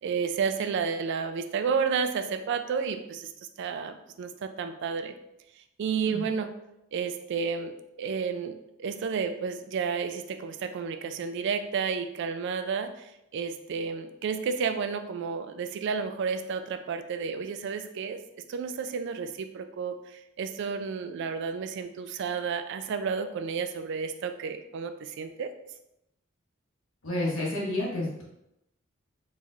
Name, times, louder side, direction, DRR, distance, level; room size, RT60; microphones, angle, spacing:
voice 1, 0.0-3.3 3.6-5.1 5.8-6.5 6.9-18.2 18.5-25.5, right 6 dB, 60° right, 9 dB, 0.3 m, -31 dB
voice 2, 27.0-28.2, left 1 dB, 75° left, -4 dB, 1.1 m, -30 dB
4.1 x 3.0 x 2.4 m, 0.85 s
head